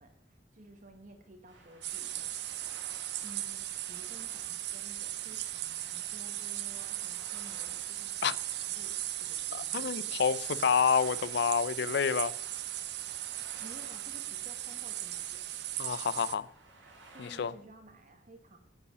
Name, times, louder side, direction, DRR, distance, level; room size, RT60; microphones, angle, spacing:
voice 1, 0.0-10.2 13.6-15.5 17.1-18.6, right 1 dB, 45° right, 1.2 m, -55 dB
sound 1, 1.5-17.5, right 2 dB, 90° right, 3.1 m, -56 dB
sound 2, 1.8-16.4, right 13 dB, 65° right, 0.6 m, -38 dB
voice 2, 9.5-12.6 15.8-16.5 17.2-17.5, left 6 dB, 60° left, 0.5 m, -29 dB
9.6 x 5.5 x 6.6 m
head